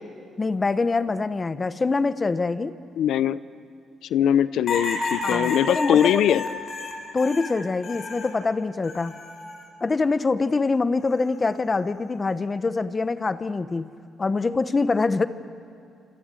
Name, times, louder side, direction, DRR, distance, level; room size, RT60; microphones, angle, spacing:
voice 1, 0.4-2.7 5.2-6.4 7.1-9.2 9.8-13.9 14.2-15.3, left 3 dB, 30° left, 12 dB, 1.0 m, -24 dB
voice 2, 3.0-3.4 4.1-6.4, left 10 dB, 75° left, 15 dB, 0.6 m, -21 dB
sound 1, 4.7-8.4 8.8-9.6 11.0-11.4, left 3 dB, 50° left, 5.4 m, -31 dB
28.0 x 26.5 x 7.7 m, 2.6 s
cardioid pair, 90°, 0 cm